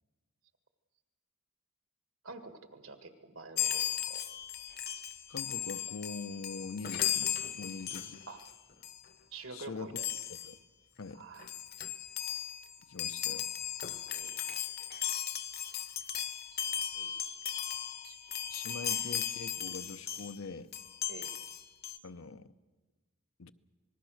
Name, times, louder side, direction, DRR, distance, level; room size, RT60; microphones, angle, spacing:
voice 1, 2.2-4.2 8.3-8.4 9.3-10.1 11.1-11.5 14.1-14.4 16.9-17.3 18.0-18.2 21.1-21.3, right 3 dB, 75° right, 1.9 m, -48 dB
Chime, 3.6-8.5 8.8-9.1 10.0-10.6 11.1-11.2 11.4-20.4 20.7-22.0, left 10 dB, 45° left, 0.9 m, -36 dB
voice 2, 5.3-8.2 9.5-10.0 10.5-10.6 11.0-11.2 12.9-13.5 18.5-20.7 22.0-22.5 23.4-23.5, left 4 dB, 80° left, 0.8 m, -43 dB
26.5 x 19.5 x 6.4 m
head